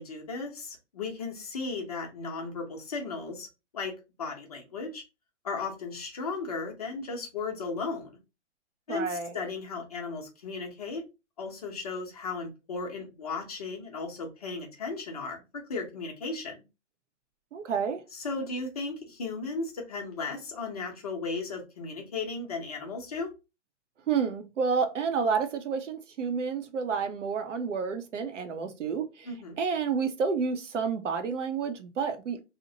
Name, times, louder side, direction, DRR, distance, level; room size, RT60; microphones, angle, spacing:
voice 1, 0.0-3.5 3.7-5.0 5.4-8.2 8.9-11.0 11.4-15.4 15.7-16.6 18.1-23.3 29.3-29.6, left 4 dB, 30° left, 0.6 m, -35 dB
voice 2, 8.9-9.4 17.5-18.0 24.1-29.3 29.6-32.4, right 5 dB, 80° right, 0.7 m, -30 dB
2.8 x 2.1 x 2.7 m
hypercardioid pair, 165°, 36 cm